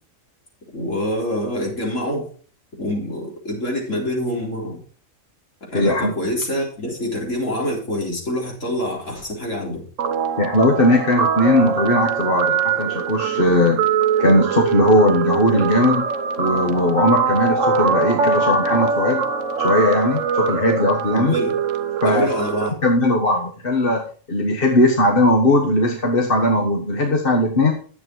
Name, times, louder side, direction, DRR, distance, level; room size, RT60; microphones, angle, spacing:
voice 1, 0.7-2.3 2.8-4.8 5.6-9.8 21.2-21.6 22.0-22.7, left 1 dB, 60° left, -2 dB, 4.3 m, -26 dB
voice 2, 5.7-6.1 10.4-13.8 14.2-16.1 16.4-19.2 19.6-21.3 22.0-22.3 22.8-27.7, left 1 dB, 40° left, 1 dB, 1.5 m, -18 dB
Guitar, 10.0-22.7, right 5 dB, 65° right, 1.2 m, -22 dB
11.0 x 8.3 x 4.6 m, 0.42 s
omnidirectional pair, 1.4 m